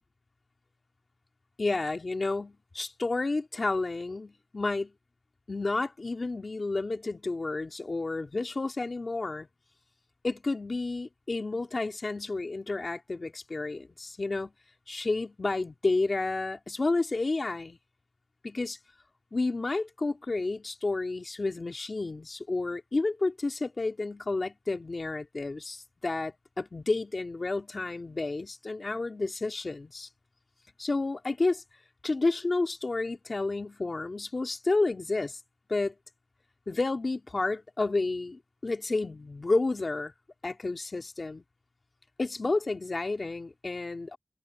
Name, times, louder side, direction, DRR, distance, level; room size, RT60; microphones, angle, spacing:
voice 1, 1.6-4.9 5.5-9.5 10.2-14.5 14.9-17.8 18.4-18.8 19.3-30.1 30.8-31.6 32.0-35.4 35.7-36.0 36.7-40.1 40.4-41.4 42.2-44.2, left 3 dB, 60° left, 2.2 m, -31 dB
wide cardioid pair, 60°, 0 cm